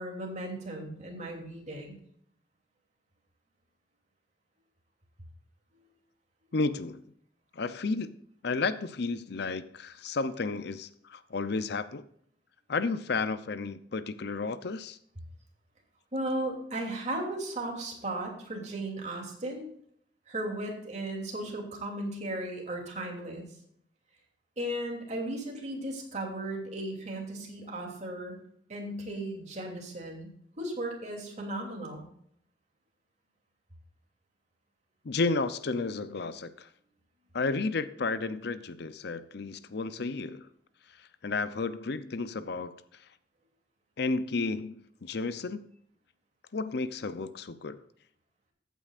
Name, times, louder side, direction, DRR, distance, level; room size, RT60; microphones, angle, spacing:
voice 1, 0.0-2.0 5.7-5.9 16.1-19.7 20.3-23.5 24.6-28.4 28.7-30.3 30.6-32.1, right 1 dB, 40° right, 0 dB, 2.9 m, -36 dB
voice 2, 6.5-7.0 7.5-8.2 8.4-12.0 12.7-15.0 35.0-36.7 37.3-40.5 41.0-42.7 44.0-45.6 46.5-47.8, left 3 dB, 60° left, 14 dB, 0.6 m, -32 dB
14.5 x 9.1 x 2.5 m, 0.67 s
head